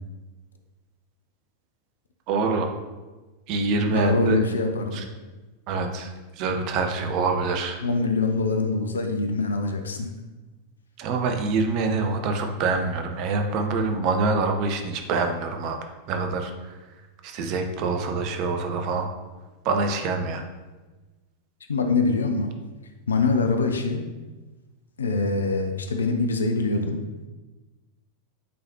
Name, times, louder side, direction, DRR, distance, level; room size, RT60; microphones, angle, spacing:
voice 1, 2.3-2.7 3.5-4.4 4.9-5.0 5.7-6.1 6.4-7.8 11.0-15.8 16.1-16.5 17.2-19.1 19.6-20.4, right 3 dB, 40° right, 4 dB, 0.7 m, -25 dB
voice 2, 3.9-5.0 7.8-10.1 21.7-22.5 23.1-24.1 25.0-27.0, left 3 dB, 70° left, 6 dB, 0.6 m, -24 dB
8.5 x 4.0 x 2.8 m, 1.2 s
figure-of-eight pair, 90°, 0 cm